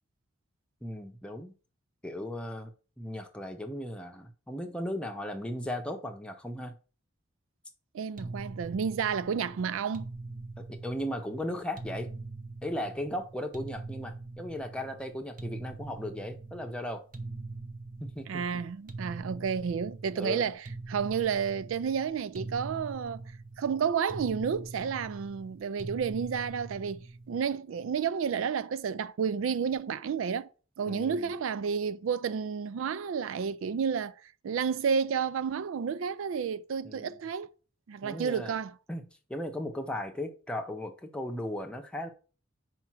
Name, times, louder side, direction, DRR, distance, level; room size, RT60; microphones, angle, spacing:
voice 1, 0.8-1.5 2.0-6.7 10.6-12.1 12.6-17.0 18.0-18.4 20.2-20.5 30.9-31.3 36.8-37.2 38.0-38.6 38.9-42.1, left 1 dB, 5° left, 0.8 m, -37 dB
voice 2, 7.9-10.1 18.3-23.2 23.6-30.5 30.8-34.1 34.4-37.5 37.9-38.7, right 6 dB, 75° right, 0.4 m, -31 dB
sound 1, 8.2-27.5, right 3 dB, 40° right, 0.7 m, -43 dB
4.9 x 4.4 x 6.0 m
head